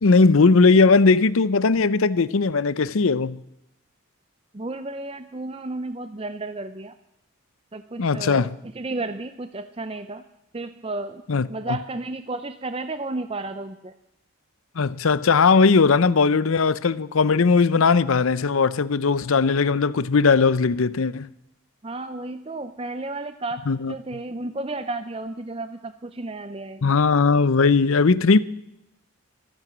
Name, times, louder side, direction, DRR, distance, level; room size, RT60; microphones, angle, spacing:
voice 1, 0.0-3.4 8.0-8.5 11.3-11.8 14.8-21.3 23.7-23.9 26.8-28.4, left 4 dB, 70° left, 0.6 m, -18 dB
voice 2, 4.5-6.9 7.7-10.2 10.5-13.9 21.8-23.6 23.9-26.8, right 2 dB, 25° right, 0.5 m, -33 dB
14.5 x 14.0 x 6.2 m
head